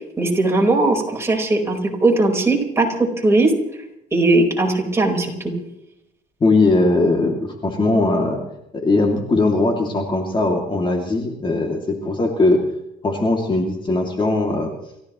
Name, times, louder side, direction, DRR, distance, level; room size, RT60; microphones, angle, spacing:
voice 1, 0.2-3.5 4.1-5.5, right 2 dB, 15° right, 0 dB, 4.6 m, -18 dB
voice 2, 6.4-8.4 8.7-12.6 13.0-14.7, left 2 dB, 30° left, 1 dB, 2.6 m, -19 dB
30.0 x 14.5 x 3.1 m, 0.84 s
cardioid pair, 110°, 17 cm